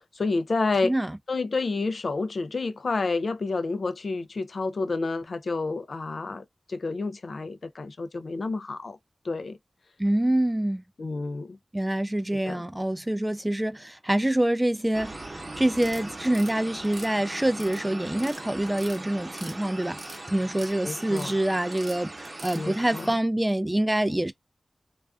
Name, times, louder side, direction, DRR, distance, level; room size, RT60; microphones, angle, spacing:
voice 1, 0.2-0.9 1.3-9.0 9.2-9.6 11.0-11.6 12.4-12.6 20.8-21.3 22.6-23.1, left 3 dB, 70° left, 0.3 m, -29 dB
voice 2, 0.8-1.2 10.0-10.8 11.7-15.2 15.6-24.3, right 1 dB, 15° right, 0.3 m, -26 dB
sound 1, 14.9-23.1, right 2 dB, 40° right, 0.8 m, -40 dB
sound 2, 15.8-16.5 16.8-17.8 18.1-18.4 18.7-19.6 19.8-20.7 21.0-21.3 21.7-22.6, right 2 dB, 75° right, 0.8 m, -43 dB
2.4 x 2.3 x 2.3 m
wide cardioid pair, 65°, 0 cm